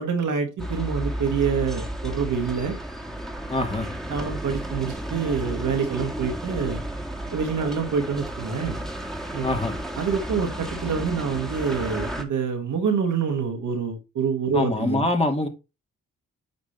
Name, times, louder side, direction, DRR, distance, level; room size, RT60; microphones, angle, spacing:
voice 1, 0.0-2.7 4.1-6.8 7.3-8.8 9.3-9.5 10.0-15.1, right 6 dB, 65° right, 2.0 m, -26 dB
sound 1, 0.6-12.2, right 1 dB, ahead, 2.2 m, -33 dB
voice 2, 3.5-3.9 9.4-9.8 14.5-15.5, left 2 dB, 20° left, 2.2 m, -24 dB
8.5 x 5.3 x 3.3 m
hypercardioid pair, 45°, 33 cm